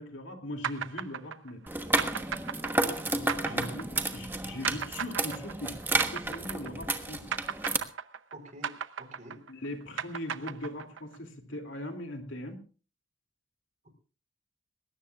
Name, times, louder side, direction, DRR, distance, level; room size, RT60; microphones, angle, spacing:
voice 1, 0.0-1.6 2.8-3.9 4.1-5.9 6.1-7.2 9.5-12.6, left 1 dB, 70° left, 4 dB, 2.7 m, -40 dB
sound 1, 0.6-7.0 7.3-11.2, right 7 dB, 75° right, 0.8 m, -36 dB
sound 2, 1.7-7.8, right 2 dB, 10° right, 1.2 m, -31 dB
voice 2, 2.7-3.2 3.5-3.8 8.3-9.4, right 1 dB, 40° right, 6 dB, 4.5 m, -49 dB
21.0 x 18.0 x 2.4 m, 0.37 s
head